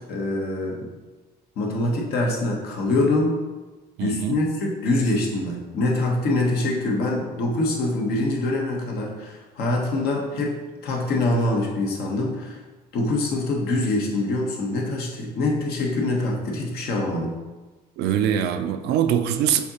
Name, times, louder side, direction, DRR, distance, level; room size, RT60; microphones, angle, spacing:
voice 1, 0.1-0.9 1.6-3.4 4.0-10.5 10.8-12.6 12.9-17.3, left 2 dB, 70° left, -1 dB, 1.0 m, -24 dB
voice 2, 4.0-4.4 18.0-19.6, right 9 dB, 75° right, 8 dB, 0.4 m, -23 dB
6.4 x 2.8 x 2.8 m, 1.2 s
cardioid pair, 110°, 17 cm